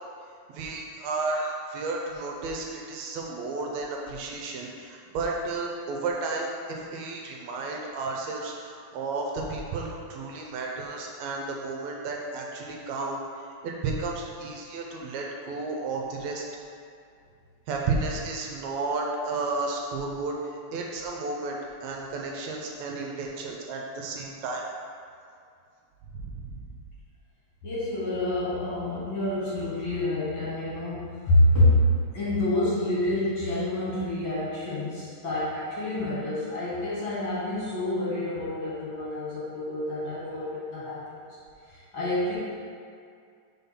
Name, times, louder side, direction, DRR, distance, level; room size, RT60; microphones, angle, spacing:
voice 1, 0.5-13.2 13.6-16.4 17.7-24.6 26.1-26.6, right 3 dB, 75° right, 0 dB, 1.9 m, -32 dB
voice 2, 27.6-41.2 41.7-42.3, left 1 dB, 55° left, -8 dB, 1.6 m, -27 dB
5.7 x 3.9 x 5.6 m, 2.3 s
omnidirectional pair, 3.3 m